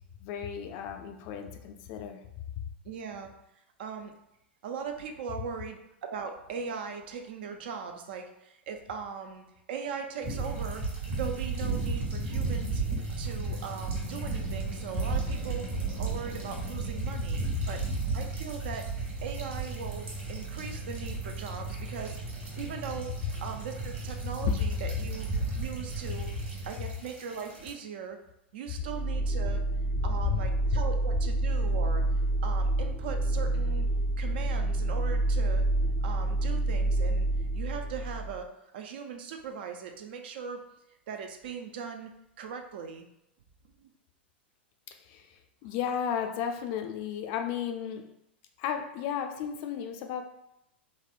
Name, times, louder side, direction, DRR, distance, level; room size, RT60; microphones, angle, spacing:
voice 1, 0.2-2.2 17.5-17.6 24.5-24.6 30.0-30.4 44.9-48.1 48.6-50.2, left 8 dB, 45° left, 5 dB, 0.4 m, -33 dB
voice 2, 2.8-3.3 3.8-4.1 4.6-10.8 11.2-12.8 13.2-15.7 16.0-17.8 18.1-18.9 19.2-22.2 22.6-23.1 23.4-25.3 25.6-26.3 26.7-28.2 28.5-29.6 30.0-32.0 32.4-33.9 34.2-35.6 36.0-37.3 37.5-38.5 38.7-40.6 41.1-42.1 42.4-43.1 43.8-43.9, right 6 dB, 60° right, 4 dB, 0.4 m, -39 dB
sound 1, 10.2-27.7, right 3 dB, 35° right, 1.4 m, -35 dB
sound 2, 11.3-26.8, right 2 dB, 80° right, 1.4 m, -40 dB
sound 3, 28.8-38.4, right 2 dB, 10° right, 0.5 m, -28 dB
3.4 x 2.1 x 2.4 m, 0.85 s
figure-of-eight pair, 95°, 6 cm